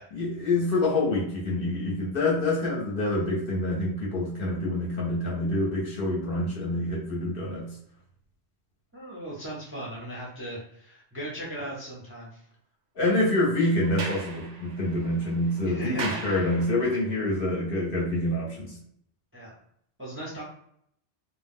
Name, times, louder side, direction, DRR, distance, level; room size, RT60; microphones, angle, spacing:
voice 1, 0.1-7.7 13.0-18.7, left 1 dB, 55° left, -4 dB, 0.8 m, -26 dB
voice 2, 8.9-12.4 15.6-16.2 19.3-19.5 20.0-20.4, right 1 dB, 15° right, -5 dB, 0.5 m, -37 dB
Sliding door, 13.8-17.1, right 4 dB, 85° right, 0.9 m, -39 dB
2.2 x 2.0 x 3.5 m, 0.69 s
omnidirectional pair, 1.2 m